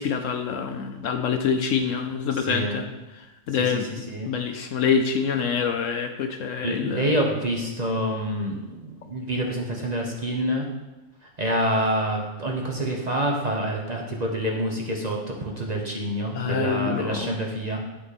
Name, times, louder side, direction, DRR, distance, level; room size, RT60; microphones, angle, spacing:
voice 1, 0.0-2.8 3.1-3.9 4.3-7.2 16.3-17.3, left 6 dB, 65° left, 6 dB, 0.9 m, -26 dB
voice 2, 2.3-2.8 3.5-4.3 6.6-10.7 11.2-17.8, right 1 dB, 30° right, -1 dB, 1.0 m, -27 dB
11.0 x 5.1 x 4.2 m, 1.1 s
omnidirectional pair, 1.6 m